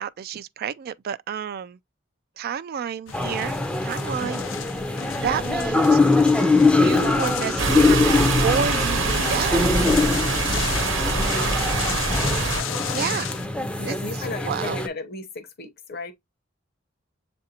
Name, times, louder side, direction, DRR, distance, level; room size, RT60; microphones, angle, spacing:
voice 1, 0.0-1.8 2.4-3.6 3.8-4.4 5.2-6.0 6.8-9.6 12.1-12.3 12.9-13.3 13.8-14.8, right 7 dB, 50° right, 0.3 m, -30 dB
sound 1, 3.1-13.5, left 8 dB, 90° left, 0.5 m, -34 dB
sound 2, 3.1-14.9, left 3 dB, 5° left, 0.5 m, -23 dB
voice 2, 4.2-4.6 5.3-5.4 10.5-10.8 11.7-12.0 13.8-16.1, left 2 dB, 55° left, 0.8 m, -35 dB
sound 3, 7.6-12.6, right 3 dB, 75° right, 0.9 m, -24 dB
7.2 x 2.6 x 2.8 m
head